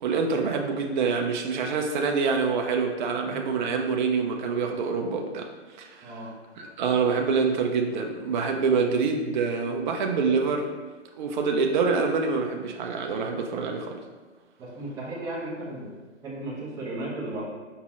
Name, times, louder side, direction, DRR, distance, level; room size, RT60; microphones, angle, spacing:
voice 1, 0.0-5.5 5.8-6.2 6.6-10.7 11.2-14.0, right 5 dB, 45° right, 3 dB, 0.5 m, -26 dB
voice 2, 6.0-6.3 14.6-15.9 16.2-17.4, right 2 dB, 10° right, -6 dB, 0.7 m, -35 dB
4.9 x 4.0 x 2.4 m, 1.3 s
hypercardioid pair, 140°, 35 cm